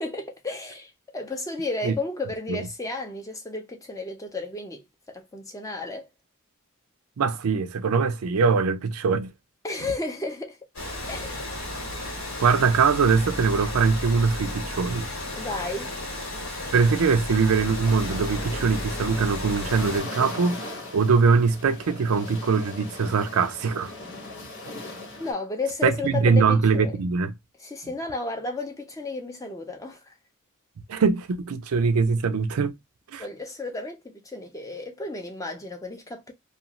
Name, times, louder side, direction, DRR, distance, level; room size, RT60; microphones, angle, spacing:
voice 1, 0.0-6.1 9.6-10.6 11.1-11.3 15.4-16.0 25.1-27.0 27.6-30.1 33.2-36.3, left 2 dB, 15° left, 0.5 m, -33 dB
voice 2, 7.2-9.3 12.4-15.1 16.7-20.7 20.9-23.9 25.8-27.3 30.9-32.7 33.1-33.2, right 5 dB, 90° right, 0.4 m, -22 dB
Water, 10.7-20.0, left 1 dB, 80° left, 1.3 m, -33 dB
sound 1, 17.8-25.3, left 2 dB, 65° left, 1.1 m, -39 dB
2.5 x 2.3 x 2.9 m
head